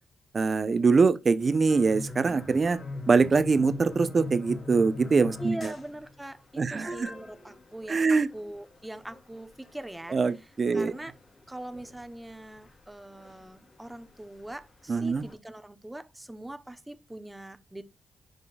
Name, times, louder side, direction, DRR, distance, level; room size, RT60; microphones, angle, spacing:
voice 1, 0.3-2.8 3.1-5.7 6.6-7.1 7.9-8.3 10.1-10.9 14.9-15.2, right 4 dB, 45° right, 0.8 m, -23 dB
sound 1, 1.4-15.3, left 2 dB, 55° left, 4.0 m, -43 dB
voice 2, 5.4-10.2 10.7-11.1 11.5-17.8, right 1 dB, 10° right, 1.0 m, -42 dB
9.6 x 5.3 x 2.4 m
cardioid pair, 65°, 0 cm